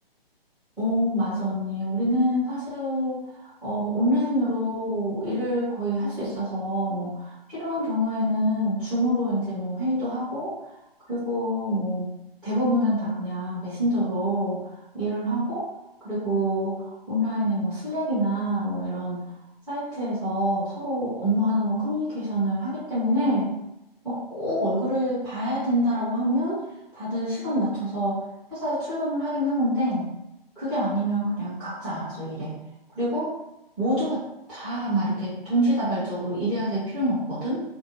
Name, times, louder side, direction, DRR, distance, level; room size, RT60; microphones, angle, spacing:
voice 1, 0.8-10.5 11.1-12.1 12.4-14.6 14.9-15.7 16.0-19.2 19.7-23.5 24.0-26.6 26.9-28.2 28.5-30.1 30.6-32.5 32.9-33.3 33.8-34.2 34.5-37.6, equal, 5° right, -16 dB, 0.9 m, -26 dB
2.5 x 2.0 x 2.7 m, 0.87 s
figure-of-eight pair, 140°, 30 cm